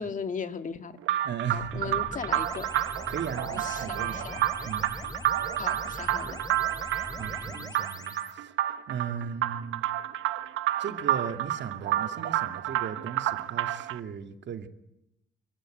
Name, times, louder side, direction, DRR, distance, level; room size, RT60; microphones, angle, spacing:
voice 1, 0.0-2.7 3.4-4.4 5.6-6.4, left 5 dB, 40° left, 7 dB, 2.6 m, -37 dB
sound 1, 1.0-14.0, right 13 dB, 85° right, 1.1 m, -30 dB
voice 2, 1.2-2.0 3.1-5.0 7.2-8.5 8.9-9.8 10.8-14.7, right 7 dB, 65° right, 7 dB, 2.4 m, -37 dB
sound 2, 1.5-8.3, left 2 dB, 20° left, 2.7 m, -42 dB
27.5 x 17.0 x 9.4 m, 0.86 s
cardioid pair, 90°, 20 cm